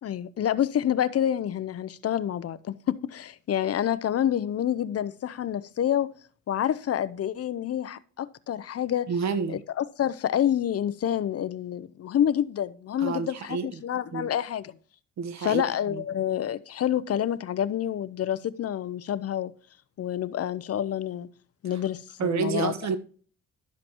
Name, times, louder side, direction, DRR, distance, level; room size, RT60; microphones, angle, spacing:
voice 1, 0.0-6.1 6.5-9.1 9.5-14.7 15.4-19.5 20.0-21.3 21.6-22.7, left 10 dB, 50° left, 0.7 m, -28 dB
voice 2, 9.1-9.6 13.0-13.7 14.1-14.3 15.2-15.6 15.9-16.0 22.2-23.0, right 5 dB, 65° right, 1.3 m, -29 dB
12.0 x 7.5 x 3.0 m
cardioid pair, 90°, 30 cm